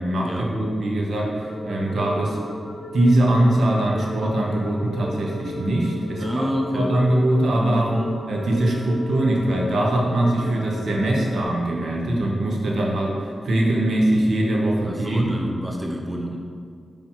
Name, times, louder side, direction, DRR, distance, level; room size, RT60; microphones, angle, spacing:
voice 1, 0.0-2.4 2.9-6.5 6.7-7.9 8.3-15.3, right 1 dB, 70° right, -2 dB, 1.2 m, -22 dB
sound 1, 1.4-11.4, left 2 dB, 65° left, 0.9 m, -36 dB
voice 2, 6.2-6.9 7.5-8.1 14.9-16.4, equal, 10° right, 0 dB, 0.8 m, -28 dB
5.5 x 5.5 x 4.5 m, 2.2 s
cardioid pair, 80°, 0 cm